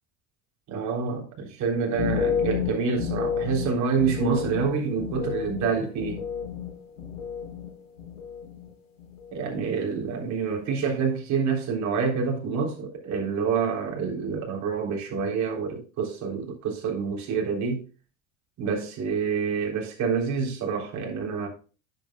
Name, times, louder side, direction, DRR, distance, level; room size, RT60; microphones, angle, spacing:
voice 1, 0.7-6.2 9.3-17.8 18.6-21.5, right 5 dB, 50° right, 3.7 m, -27 dB
sound 1, 1.9-7.7 8.0-8.7 9.0-9.4, left 7 dB, 90° left, 4.0 m, -31 dB
10.5 x 9.3 x 2.3 m
hypercardioid pair, 85°, 37 cm